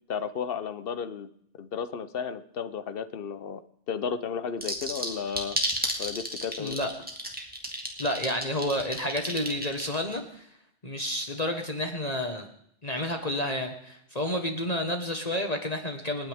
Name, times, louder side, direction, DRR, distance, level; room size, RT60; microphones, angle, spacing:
voice 1, 0.1-1.3 1.6-3.6 3.9-5.6 6.0-6.8, left 7 dB, 55° left, 13 dB, 1.0 m, -33 dB
sound 1, 4.6-10.2, equal, 10° right, 2.3 m, -32 dB
voice 2, 6.6-6.9 8.0-10.5 10.8-12.5 12.8-16.3, left 1 dB, 35° left, 4 dB, 1.5 m, -30 dB
28.5 x 9.8 x 3.6 m, 0.72 s
omnidirectional pair, 1.2 m